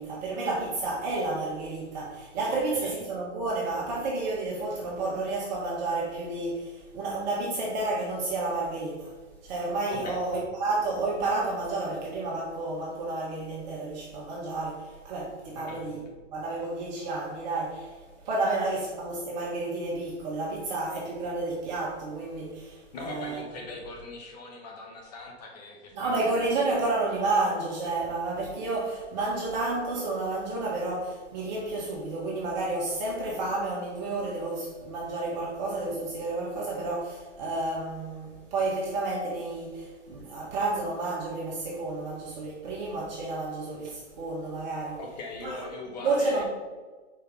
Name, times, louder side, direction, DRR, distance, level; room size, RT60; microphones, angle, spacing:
voice 1, 0.0-9.1 9.4-16.0 16.3-18.0 18.2-23.4 25.9-45.0 45.4-45.6 46.0-46.4, right 2 dB, 35° right, -4 dB, 1.3 m, -31 dB
voice 2, 2.5-3.0 9.9-10.2 15.6-15.9 22.9-26.2 45.0-46.4, left 3 dB, 35° left, 1 dB, 0.9 m, -41 dB
4.5 x 4.5 x 5.3 m, 1.3 s
hypercardioid pair, 150°, 37 cm